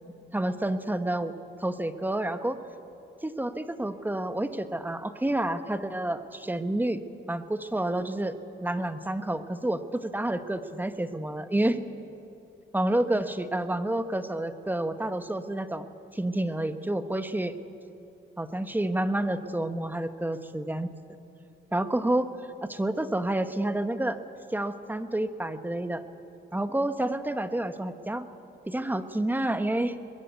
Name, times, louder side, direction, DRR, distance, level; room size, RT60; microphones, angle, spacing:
voice 1, 0.3-1.3 1.6-2.6 3.2-7.0 7.3-11.8 12.7-15.9 16.1-17.6 18.4-20.9 21.7-22.3 22.6-24.2 24.5-26.0 26.5-28.3 28.7-30.0, right 1 dB, 10° right, 10 dB, 1.3 m, -29 dB
22.5 x 21.0 x 8.2 m, 2.7 s
cardioid pair, 90°, 20 cm